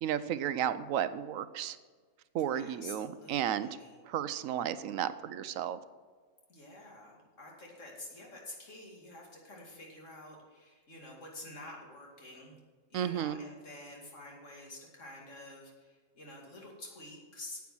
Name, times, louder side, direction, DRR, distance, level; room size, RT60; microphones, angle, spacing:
voice 1, 0.0-1.8 2.3-3.7 4.1-5.8 12.9-13.4, right 10 dB, 80° right, 14 dB, 1.0 m, -33 dB
voice 2, 2.5-4.0 6.5-12.6 12.9-17.6, left 1 dB, 65° left, -1 dB, 2.7 m, -49 dB
9.4 x 8.6 x 6.2 m, 1.5 s
omnidirectional pair, 1.4 m